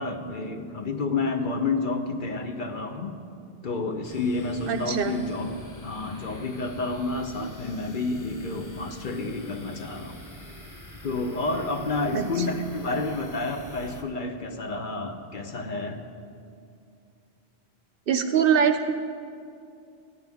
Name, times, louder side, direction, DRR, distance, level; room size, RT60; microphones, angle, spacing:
voice 1, 0.0-3.1 3.6-5.5 5.8-10.2 11.0-16.0, left 3 dB, 50° left, 5 dB, 0.8 m, -30 dB
sound 1, 4.0-14.0, left 1 dB, 20° left, 0.7 m, -45 dB
voice 2, 4.7-5.1 12.1-12.5 18.1-18.9, right 7 dB, 60° right, 8 dB, 0.7 m, -23 dB
15.0 x 10.5 x 3.5 m, 2.4 s
omnidirectional pair, 1.1 m